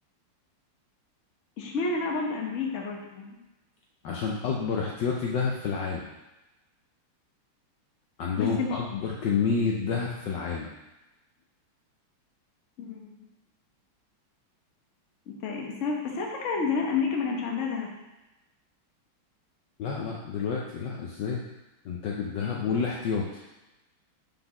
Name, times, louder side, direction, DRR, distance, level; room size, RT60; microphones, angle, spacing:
voice 1, 1.6-3.4 8.4-8.8 12.8-13.3 15.3-17.9 22.4-22.5, left 4 dB, 45° left, 0 dB, 1.1 m, -30 dB
voice 2, 4.0-6.1 8.2-10.7 19.8-21.4 21.8-23.4, left 5 dB, 70° left, -2 dB, 1.2 m, -29 dB
5.4 x 4.0 x 5.8 m, 1.0 s
omnidirectional pair, 2.4 m